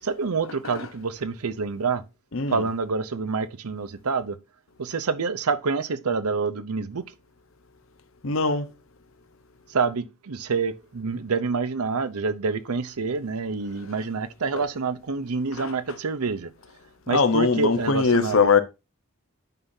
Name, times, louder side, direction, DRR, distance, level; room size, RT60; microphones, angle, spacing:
voice 1, 0.0-2.0 2.5-4.4 4.8-7.0 9.7-16.5 17.1-18.5, right 4 dB, 80° right, 0.7 m, -27 dB
voice 2, 2.3-2.6 8.2-8.7 15.5-15.7 17.1-18.6, left 4 dB, 60° left, 0.8 m, -21 dB
9.2 x 5.6 x 2.7 m
head